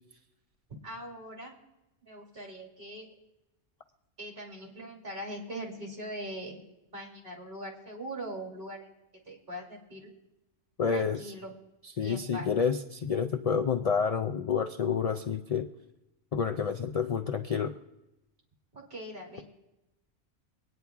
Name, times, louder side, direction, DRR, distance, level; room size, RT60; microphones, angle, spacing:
voice 1, 0.8-1.5 2.1-3.1 4.2-6.6 6.9-8.9 9.2-10.1 10.9-11.5 12.0-12.5 18.7-19.4, right 1 dB, 45° right, -3 dB, 2.7 m, -41 dB
voice 2, 10.8-11.2 12.0-15.7 16.3-17.7, left 6 dB, 70° left, 6 dB, 0.3 m, -29 dB
24.0 x 9.4 x 2.4 m, 0.95 s
omnidirectional pair, 1.3 m